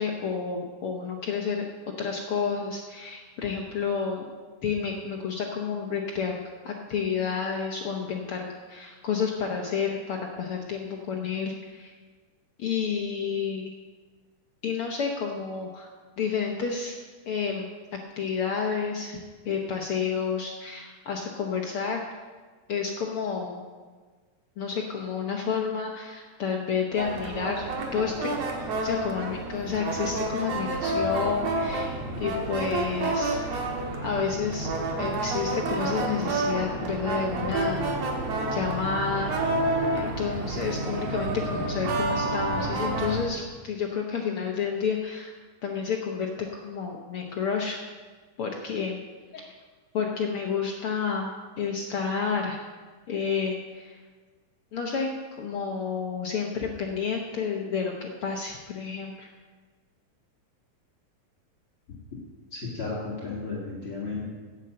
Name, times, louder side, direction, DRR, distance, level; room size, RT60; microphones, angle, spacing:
voice 1, 0.0-1.6 2.0-4.2 4.6-6.4 6.6-11.9 12.6-13.7 14.6-15.9 16.2-17.0 17.2-17.7 18.2-19.2 19.4-22.0 22.7-23.6 24.6-27.6 27.9-28.3 28.8-33.4 34.0-34.7 35.0-37.9 38.5-39.3 39.9-45.3 45.6-47.8 48.4-49.0 49.3-49.5 49.9-52.6 53.1-54.0 54.7-55.1 55.4-59.3, left 6 dB, 70° left, 0 dB, 1.3 m, -30 dB
sound 1, 27.0-43.3, right 2 dB, 60° right, 2.3 m, -29 dB
voice 2, 62.5-64.3, left 3 dB, 45° left, -5 dB, 2.6 m, -33 dB
9.9 x 8.9 x 7.6 m, 1.4 s
omnidirectional pair, 3.8 m